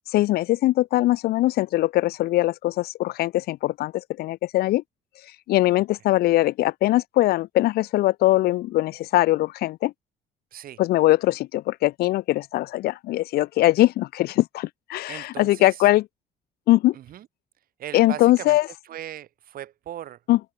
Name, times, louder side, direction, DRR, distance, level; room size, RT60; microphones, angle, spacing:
voice 1, 0.1-4.8 5.5-9.9 10.8-16.0 16.7-16.9 17.9-18.6 20.3-20.4, left 16 dB, 65° left, 0.4 m, -21 dB
voice 2, 15.1-15.9 16.9-17.3 17.8-18.6 18.8-20.2, right 11 dB, 60° right, 2.0 m, -38 dB
cardioid pair, 110°, 17 cm